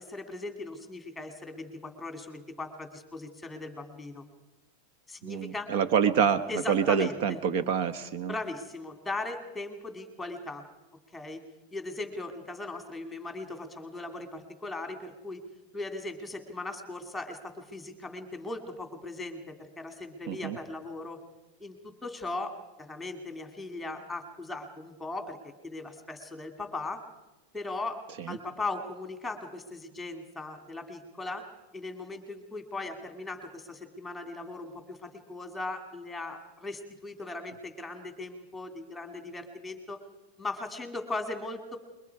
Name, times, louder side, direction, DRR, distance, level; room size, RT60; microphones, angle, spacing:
voice 1, 0.0-4.2 5.1-5.7 6.5-7.4 8.3-10.6 11.1-11.4 11.7-15.4 15.7-21.2 21.6-27.0 27.5-28.0 28.3-31.5 31.7-40.0 40.4-41.8, left 2 dB, 5° left, 6 dB, 2.5 m, -38 dB
voice 2, 5.2-8.3 20.3-20.6 28.2-28.4, right 7 dB, 60° right, 12 dB, 1.1 m, -27 dB
28.0 x 22.5 x 4.7 m, 1.1 s
supercardioid pair, 145°, 0 cm